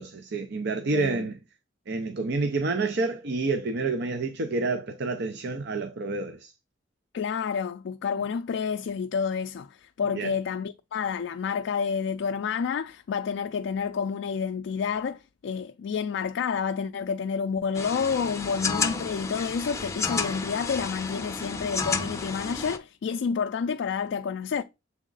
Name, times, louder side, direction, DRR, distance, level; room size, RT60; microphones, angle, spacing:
voice 1, 0.0-1.3 1.9-6.5 10.1-10.3, right 3 dB, 60° right, 0.6 m, -28 dB
voice 2, 0.9-1.3 7.1-24.6, left 6 dB, 65° left, 0.3 m, -29 dB
sound 1, 17.7-22.8, left 4 dB, 15° left, 0.6 m, -31 dB
7.3 x 3.6 x 3.9 m
head